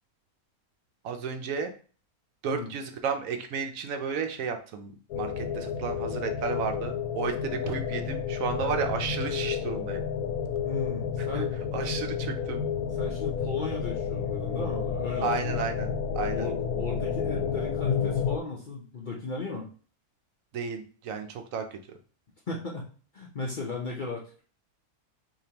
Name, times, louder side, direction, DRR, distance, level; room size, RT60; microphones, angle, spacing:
voice 1, 1.0-1.7 2.4-10.0 11.2-11.4 11.7-12.7 15.2-16.5 20.5-21.8, right 6 dB, 70° right, 6 dB, 1.0 m, -33 dB
sound 1, 5.1-18.4, left 7 dB, 80° left, 1.1 m, -30 dB
voice 2, 10.6-11.6 11.9-12.0 13.0-15.7 16.3-19.7 22.5-24.4, left 3 dB, 45° left, -2 dB, 0.6 m, -36 dB
5.0 x 2.9 x 2.9 m, 0.40 s
omnidirectional pair, 1.5 m